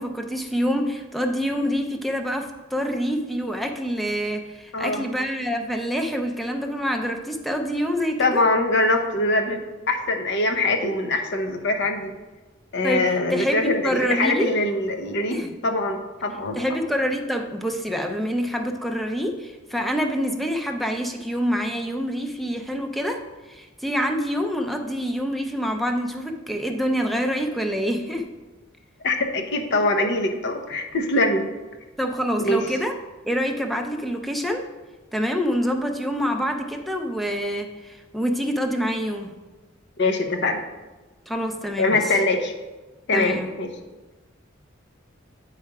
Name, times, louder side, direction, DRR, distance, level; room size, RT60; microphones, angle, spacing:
voice 1, 0.0-8.4 12.8-14.5 15.3-15.5 16.6-23.2 23.5-28.3 32.0-32.9 33.2-34.6 35.1-39.3 41.3-42.0 43.1-43.5, equal, ahead, 3 dB, 0.5 m, -26 dB
voice 2, 4.7-5.0 8.2-9.6 9.9-12.1 12.7-16.6 29.0-31.5 32.4-32.6 40.0-40.6 41.8-42.5 43.1-43.7, left 2 dB, 65° left, 5 dB, 0.8 m, -23 dB
9.2 x 3.3 x 4.7 m, 1.2 s
head